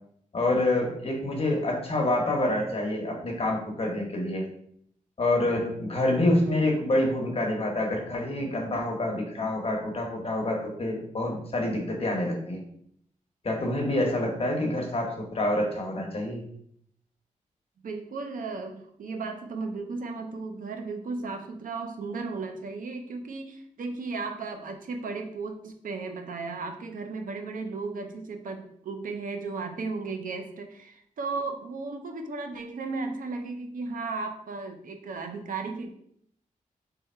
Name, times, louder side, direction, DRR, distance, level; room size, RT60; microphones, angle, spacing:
voice 1, 0.3-4.4 5.2-12.6 13.4-16.4, left 1 dB, 45° left, 0 dB, 1.0 m, -27 dB
voice 2, 17.8-35.9, right 4 dB, 80° right, 5 dB, 0.7 m, -35 dB
3.4 x 3.4 x 4.3 m, 0.68 s
wide cardioid pair, 115°, 14 cm